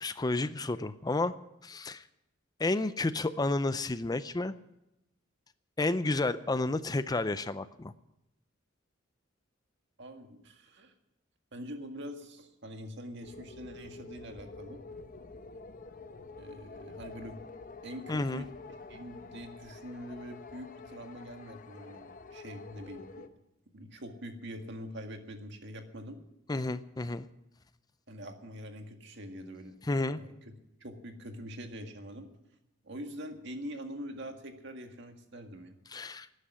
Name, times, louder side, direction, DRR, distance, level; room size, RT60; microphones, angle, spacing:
voice 1, 0.0-1.3 1.6-2.0 2.6-4.5 5.8-7.9 18.1-18.4 26.5-27.3 29.8-30.2 35.9-36.3, left 2 dB, 20° left, 13 dB, 0.5 m, -31 dB
voice 2, 10.0-10.9 11.5-14.8 16.4-17.4 17.8-18.5 18.9-23.3 23.7-26.2 28.1-29.8 30.2-30.3 30.8-32.3 32.8-35.8, equal, 65° right, 5 dB, 1.9 m, -44 dB
sound 1, 13.2-23.3, left 3 dB, 45° left, 0.9 m, -48 dB
12.5 x 9.9 x 9.5 m, 0.86 s
head